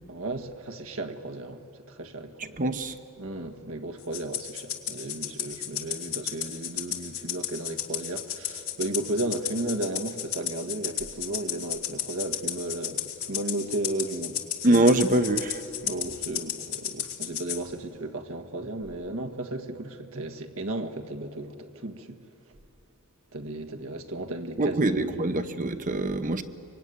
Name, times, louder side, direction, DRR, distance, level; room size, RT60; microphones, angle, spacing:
voice 1, 0.1-2.6 3.2-14.4 15.8-22.2 23.3-25.5, right 2 dB, 70° right, 1.6 m, -34 dB
voice 2, 2.6-3.0 14.6-15.6 24.6-26.4, right 1 dB, 40° right, 0.9 m, -23 dB
Rattle (instrument), 4.1-17.6, left 11 dB, 70° left, 2.2 m, -33 dB
24.5 x 24.5 x 9.7 m
head